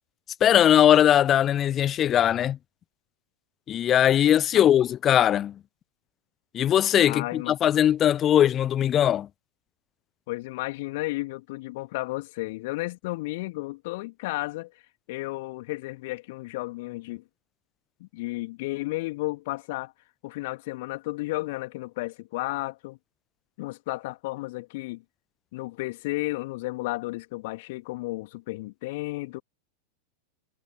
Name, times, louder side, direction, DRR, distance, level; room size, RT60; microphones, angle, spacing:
voice 1, 0.4-2.6 3.7-5.6 6.5-9.3, left 10 dB, 30° left, 0.7 m, -20 dB
voice 2, 7.1-7.6 10.3-14.7 15.1-17.2 18.0-19.9 20.2-23.0 23.6-25.0 25.5-29.4, left 21 dB, 50° left, 2.9 m, -33 dB
figure-of-eight pair, 90°, 0 cm